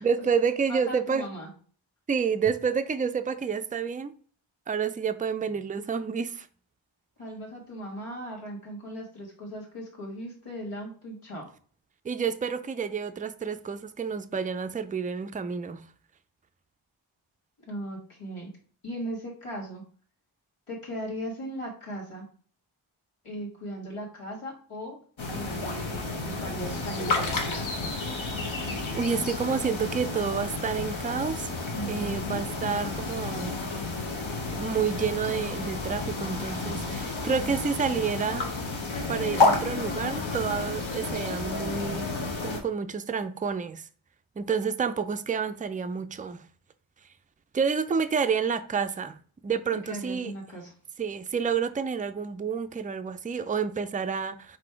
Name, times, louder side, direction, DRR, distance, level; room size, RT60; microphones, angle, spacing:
voice 1, 0.0-1.3 2.1-4.1 4.7-6.5 12.0-15.8 28.9-31.5 31.9-33.5 34.6-38.5 39.1-42.1 42.4-43.8 44.4-46.4 47.5-49.2 49.4-50.3 51.0-54.6, right 6 dB, 20° right, 0.3 m, -29 dB
voice 2, 0.7-1.5 7.2-11.5 17.7-18.5 18.8-19.8 20.7-22.3 23.2-25.0 25.3-27.6 31.7-32.4 49.9-50.7, right 1 dB, 85° left, 1.6 m, -38 dB
sound 1, 25.2-42.6, left 3 dB, 65° left, 1.0 m, -31 dB
4.1 x 2.6 x 4.5 m
wide cardioid pair, 40°, 50 cm